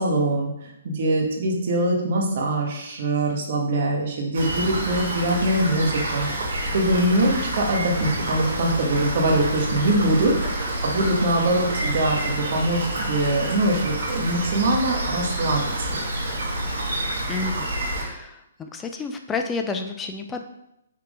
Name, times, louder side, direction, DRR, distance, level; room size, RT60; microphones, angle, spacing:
voice 1, 0.0-6.5 6.7-10.3 10.8-15.9, right 1 dB, 55° right, 0 dB, 1.6 m, -23 dB
Rain, 4.3-18.0, right 1 dB, 70° right, 2.2 m, -28 dB
voice 2, 18.0-20.4, left 4 dB, 15° left, 5 dB, 0.5 m, -30 dB
5.8 x 3.6 x 5.0 m, 0.84 s
hypercardioid pair, 140°, 0 cm